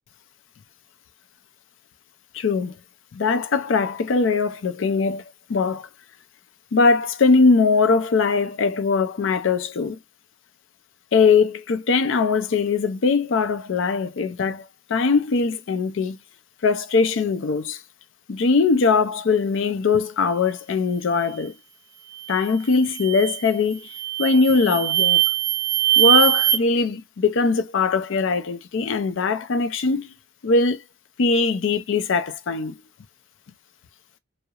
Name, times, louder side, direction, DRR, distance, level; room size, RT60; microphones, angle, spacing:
voice 1, 2.3-2.7 3.1-5.2 5.5-5.9 6.7-10.0 11.1-16.2 16.6-17.8 18.3-21.5 22.3-23.9 24.2-25.2 26.0-30.1 30.4-30.8 31.2-32.7, left 4 dB, 70° left, 0.4 m, -21 dB
sound 1, 22.1-22.4 22.9-23.4 23.9-26.6, right 14 dB, 15° right, 0.6 m, -21 dB
2.8 x 2.0 x 2.3 m
head